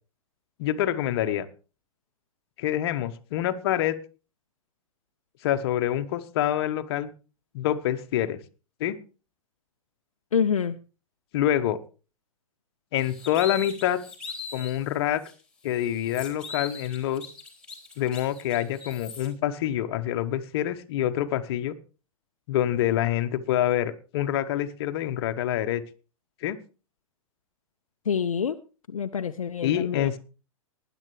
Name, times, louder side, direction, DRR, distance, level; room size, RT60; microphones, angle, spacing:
voice 1, 0.6-1.5 2.6-4.0 5.4-7.1 7.5-8.4 8.8-9.0 11.3-11.8 12.9-14.0 14.5-15.2 15.6-17.2 18.0-21.8 22.5-25.8 26.4-26.6 29.6-30.2, left 12 dB, 45° left, 9 dB, 1.0 m, -26 dB
voice 2, 10.3-10.8 28.1-28.6 28.9-30.1, left 7 dB, 70° left, 8 dB, 0.6 m, -26 dB
sound 1, 13.0-14.8 15.2-15.3 15.7-19.3, left 5 dB, 5° left, 3.3 m, -40 dB
19.5 x 9.9 x 3.2 m, 0.34 s
figure-of-eight pair, 105°, 18 cm